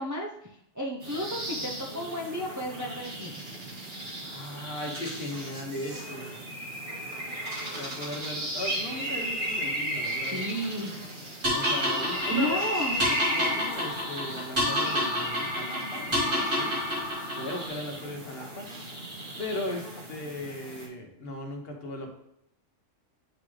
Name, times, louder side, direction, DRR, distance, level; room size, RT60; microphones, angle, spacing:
voice 1, 0.0-3.4 10.3-10.9 12.3-13.0, equal, 20° right, -1 dB, 0.6 m, -33 dB
sound 1, 1.0-20.9, right 1 dB, 50° right, 1.9 m, -35 dB
voice 2, 4.2-6.4 7.7-10.4 11.5-16.8 17.3-18.7 19.4-22.1, left 1 dB, 50° left, 1 dB, 1.4 m, -37 dB
sound 2, 11.4-17.7, left 1 dB, 90° right, 3.0 m, -29 dB
9.9 x 3.8 x 3.2 m, 0.77 s
omnidirectional pair, 1.3 m